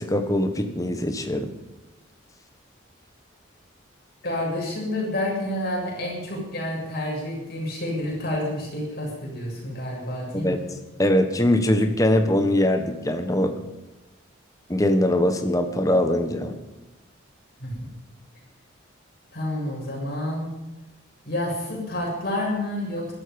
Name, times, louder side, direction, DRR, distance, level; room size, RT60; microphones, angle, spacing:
voice 1, 0.0-1.5 10.3-10.6 11.0-13.6 14.7-16.6, left 1 dB, 15° left, 6 dB, 1.3 m, -22 dB
voice 2, 4.2-10.6 17.6-17.7 19.3-20.5 21.3-23.1, left 1 dB, 50° left, -2 dB, 7.3 m, -29 dB
21.0 x 12.5 x 5.3 m, 1.0 s
head